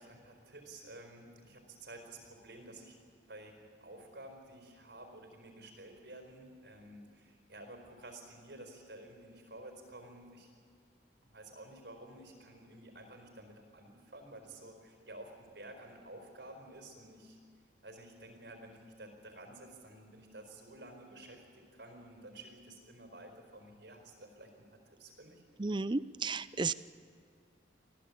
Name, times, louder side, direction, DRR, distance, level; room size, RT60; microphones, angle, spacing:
voice 1, 0.0-3.0 3.3-10.5 11.3-17.4 17.8-25.4, right 1 dB, 65° right, 3 dB, 4.5 m, -52 dB
voice 2, 25.6-26.7, right 3 dB, 25° right, 16 dB, 0.5 m, -33 dB
25.5 x 16.0 x 8.6 m, 2.2 s
head